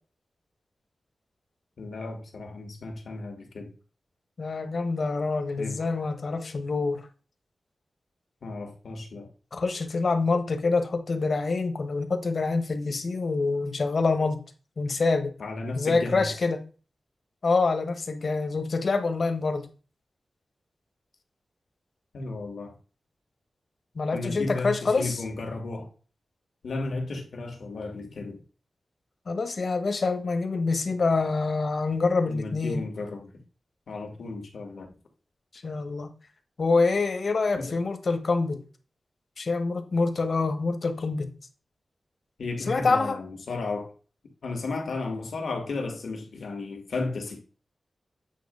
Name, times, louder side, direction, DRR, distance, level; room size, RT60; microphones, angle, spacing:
voice 1, 1.8-3.7 5.6-5.8 8.4-9.3 15.4-16.3 22.1-22.8 24.1-25.9 26.6-28.4 32.3-33.4 33.9-34.9 37.6-37.8 42.4-43.9 44.4-47.4, left 3 dB, 90° left, 1.9 m, -34 dB
voice 2, 4.4-7.0 9.5-14.4 14.8-15.3 15.8-16.6 17.4-19.7 24.0-25.2 29.3-32.8 35.6-36.1 36.6-38.6 39.4-41.3 42.7-43.2, left 3 dB, 55° left, 1.0 m, -26 dB
8.4 x 3.0 x 5.2 m
wide cardioid pair, 140°, 0 cm